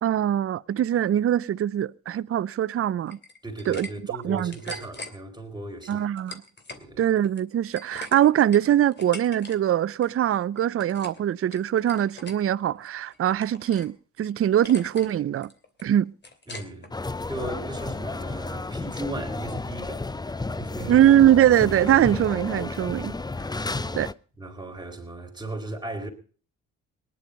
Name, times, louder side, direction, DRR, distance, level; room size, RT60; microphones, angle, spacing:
voice 1, 0.0-3.2 3.7-4.8 5.9-6.4 7.0-15.5 15.8-16.1 20.9-23.1 24.0-24.1, right 11 dB, 40° right, 0.6 m, -22 dB
sound 1, 3.1-3.9 4.2-5.1 5.8-6.8 7.2-9.6 9.8-10.2 10.5-11.2 11.5-12.4 12.8-13.9 14.2-14.3 14.6-15.1 15.4-16.9, left 3 dB, 30° left, 2.9 m, -42 dB
voice 2, 3.4-6.1 6.7-7.1 16.5-21.0 23.6-24.0 24.4-26.1, right 2 dB, 10° right, 4.4 m, -37 dB
sound 2, 16.9-24.1, left 3 dB, 10° left, 0.6 m, -32 dB
19.0 x 11.0 x 5.2 m
supercardioid pair, 60°, 34 cm